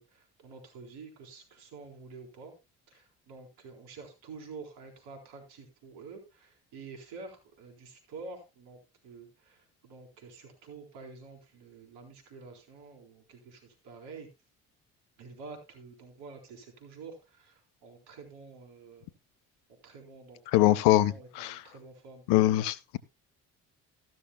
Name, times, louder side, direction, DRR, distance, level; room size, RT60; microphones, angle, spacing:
voice 1, 0.0-2.5 2.9-8.8 9.0-14.3 15.2-19.1 19.8-22.2, right 4 dB, 75° right, 4.0 m, -48 dB
voice 2, 20.5-21.6 22.3-23.0, left 15 dB, 75° left, 0.9 m, -23 dB
14.0 x 12.5 x 2.3 m
hypercardioid pair, 45°, 41 cm